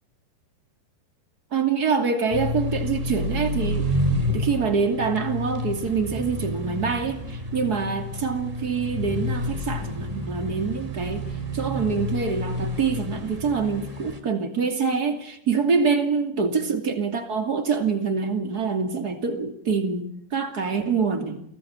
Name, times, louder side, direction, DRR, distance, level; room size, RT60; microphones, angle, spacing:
voice 1, 1.5-3.9 4.3-11.2 11.5-21.4, right 5 dB, 30° right, 6 dB, 2.2 m, -25 dB
sound 1, 2.3-14.2, left 1 dB, 10° right, 2.0 m, -29 dB
29.5 x 18.0 x 8.9 m, 0.70 s
omnidirectional pair, 5.3 m